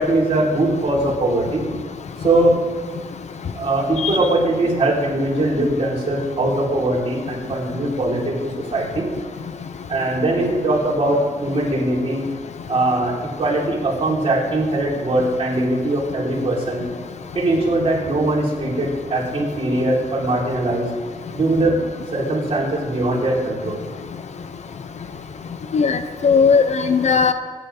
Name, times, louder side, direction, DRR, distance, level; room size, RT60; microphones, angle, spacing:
voice 1, 0.0-1.6 2.2-2.6 3.5-8.3 8.7-9.1 9.9-12.2 12.7-16.8 17.3-20.9 21.3-21.8 22.1-23.8, right 1 dB, 40° right, -5 dB, 4.8 m, -21 dB
voice 2, 25.7-27.3, left 5 dB, 50° left, 10 dB, 0.7 m, -17 dB
23.5 x 11.0 x 3.9 m, 1.5 s
wide cardioid pair, 140°, 15 cm